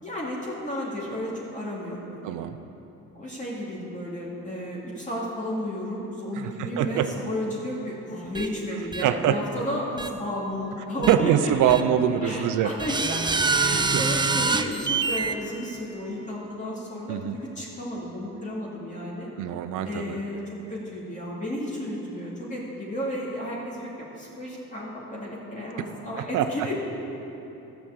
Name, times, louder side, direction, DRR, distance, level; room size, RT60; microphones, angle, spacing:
voice 1, 0.0-2.4 3.1-11.7 12.2-19.3 19.8-26.7, equal, 25° left, -5 dB, 2.7 m, -33 dB
voice 2, 2.2-2.6 6.4-7.1 9.0-9.4 11.1-12.7 13.9-14.0 17.1-17.4 19.4-20.2 26.3-26.5, right 10 dB, 85° right, 10 dB, 0.7 m, -23 dB
sound 1, 8.3-8.5 8.9-9.0 10.0-10.1 11.0-11.1 11.7-11.8 12.8-15.3, right 4 dB, 15° right, 0.5 m, -25 dB
12.5 x 6.0 x 8.0 m, 3.0 s
cardioid pair, 90°, 30 cm